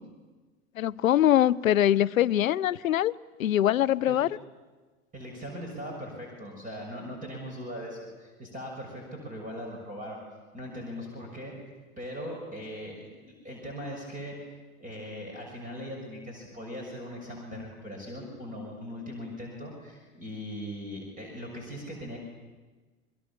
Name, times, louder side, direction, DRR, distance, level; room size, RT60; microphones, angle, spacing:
voice 1, 0.8-3.1 3.4-4.3, left 12 dB, 65° left, 19 dB, 0.8 m, -23 dB
voice 2, 5.1-10.2 10.5-11.5 12.0-14.5 14.8-22.2, equal, 20° right, 0 dB, 6.7 m, -40 dB
28.5 x 23.0 x 7.4 m, 1.3 s
figure-of-eight pair, 90°, 43 cm